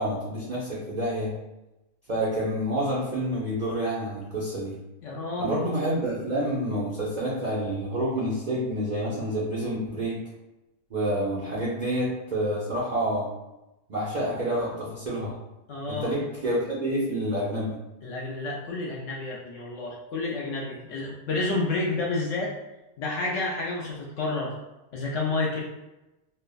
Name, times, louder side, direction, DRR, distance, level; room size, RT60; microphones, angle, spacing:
voice 1, 0.0-1.3 2.1-4.7 5.4-10.2 10.9-13.3 13.9-15.3 15.9-17.8, right 1 dB, 75° right, -7 dB, 0.4 m, -28 dB
voice 2, 5.0-5.6 15.7-16.1 18.0-22.5 23.0-24.6 24.9-25.6, left 3 dB, 70° left, -3 dB, 0.8 m, -30 dB
3.2 x 2.0 x 2.3 m, 0.98 s
omnidirectional pair, 1.6 m